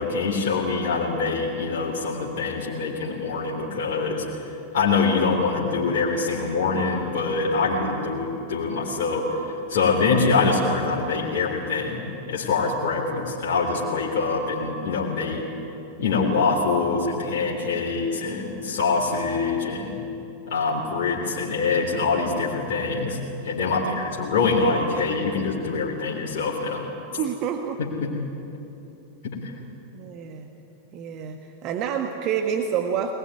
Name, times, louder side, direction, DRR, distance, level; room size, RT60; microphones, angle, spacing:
voice 1, 0.0-4.2 4.7-15.5 16.0-20.0 20.5-23.2 23.4-26.8 27.8-28.1 29.2-29.4, left 4 dB, 50° left, -4 dB, 3.6 m, -24 dB
voice 2, 7.8-8.1 23.6-24.0 27.2-27.8 29.9-30.5 30.9-33.1, right 8 dB, 40° right, 5 dB, 1.6 m, -29 dB
22.0 x 21.0 x 9.7 m, 3.0 s
figure-of-eight pair, 90°, 0 cm